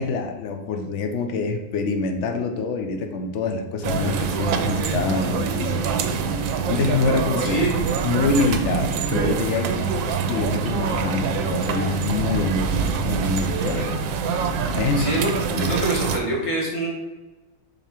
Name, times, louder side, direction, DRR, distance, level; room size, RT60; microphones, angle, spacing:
voice 1, 0.0-5.7 6.7-7.6 8.0-9.7 10.3-14.0 14.7-15.1 15.5-15.7, left 4 dB, 70° left, 5 dB, 0.6 m, -26 dB
sound 1, 3.8-16.2, right 5 dB, 90° right, 1.4 m, -25 dB
voice 2, 7.4-7.7 15.0-15.3 15.6-16.9, right 1 dB, 45° left, -4 dB, 2.1 m, -25 dB
5.4 x 4.2 x 4.3 m, 1.2 s
omnidirectional pair, 2.0 m